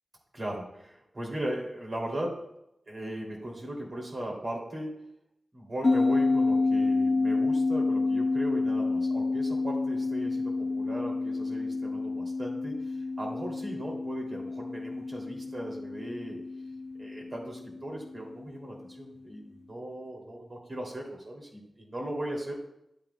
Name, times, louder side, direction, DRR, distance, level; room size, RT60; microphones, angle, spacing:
voice 1, 0.3-2.4 2.9-4.9 5.5-16.4 17.0-22.6, right 1 dB, 45° right, -2 dB, 2.8 m, -38 dB
sound 1, 5.8-18.6, left 3 dB, 30° left, 0.3 m, -29 dB
11.5 x 8.5 x 2.3 m, 0.80 s
wide cardioid pair, 115°, 0 cm